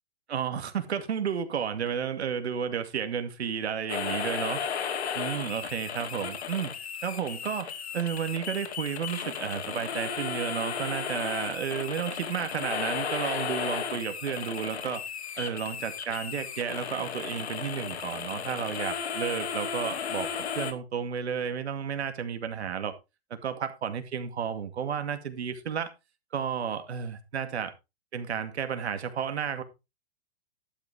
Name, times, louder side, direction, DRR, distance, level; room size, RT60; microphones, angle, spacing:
voice 1, 0.3-4.7 5.1-15.0 15.4-22.9 23.4-25.9 26.3-27.7 28.1-29.6, right 7 dB, 90° right, 2.3 m, -32 dB
sound 1, 3.9-20.7, left 7 dB, 85° left, 2.4 m, -34 dB
11.5 x 8.2 x 3.5 m
hypercardioid pair, 155°, 32 cm